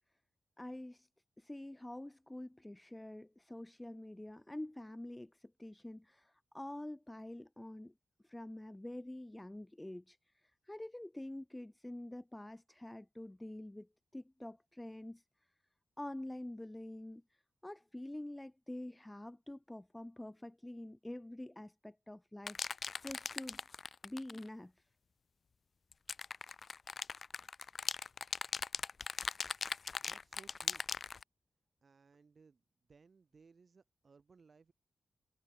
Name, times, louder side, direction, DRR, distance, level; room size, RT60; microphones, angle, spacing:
voice 1, 0.6-1.1 1.4-7.9 8.2-15.2 16.0-23.6 24.0-24.8, left 1 dB, 15° left, 4.1 m, -47 dB
sound 1, 22.5-24.5 25.9-31.2, left 5 dB, 55° left, 0.6 m, -39 dB
voice 2, 30.0-30.9 31.8-32.6 32.9-34.7, right 5 dB, 55° right, 7.0 m, -63 dB
supercardioid pair, 40°, 0 cm